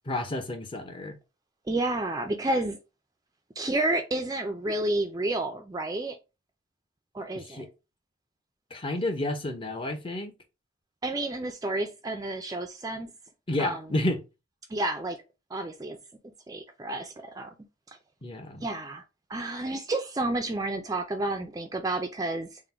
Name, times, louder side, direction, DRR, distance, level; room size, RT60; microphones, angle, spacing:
voice 1, 0.1-1.2 7.4-7.7 8.7-10.3 13.5-14.2 18.2-18.6, left 1 dB, 25° left, 0.6 m, -30 dB
voice 2, 1.7-2.8 3.6-6.2 7.1-7.6 11.0-13.1 13.6-13.8 14.7-15.2 15.5-16.0 16.5-17.5 17.9-18.0 18.6-19.0 19.3-22.6, right 2 dB, 20° right, 0.3 m, -30 dB
3.7 x 2.1 x 4.3 m
head